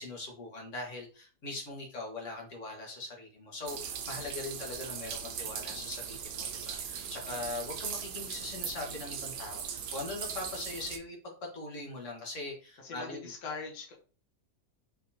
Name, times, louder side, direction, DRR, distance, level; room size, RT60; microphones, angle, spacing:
voice 1, 0.0-13.3, left 2 dB, 50° left, -1 dB, 1.5 m, -41 dB
sound 1, 3.7-11.0, right 7 dB, 80° right, 1.2 m, -39 dB
voice 2, 12.8-13.9, left 4 dB, 65° left, 0 dB, 1.6 m, -41 dB
4.3 x 3.7 x 2.8 m, 0.38 s
omnidirectional pair, 1.8 m